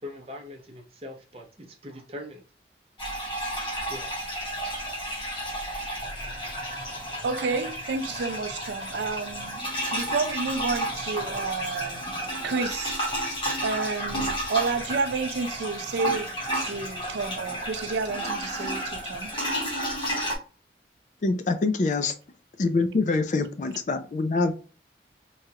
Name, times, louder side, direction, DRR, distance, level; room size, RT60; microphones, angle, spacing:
voice 1, 0.0-2.4 3.9-4.2, left 1 dB, 35° right, 0.6 m, -41 dB
sound 1, 3.0-20.4, right 1 dB, 25° left, 1.1 m, -32 dB
voice 2, 7.2-9.6 9.9-12.1 12.4-12.9 13.6-16.3 16.5-19.3, right 4 dB, 80° right, 0.4 m, -30 dB
voice 3, 21.2-22.1 22.6-24.6, left 3 dB, 45° left, 0.3 m, -25 dB
3.1 x 2.4 x 2.7 m
head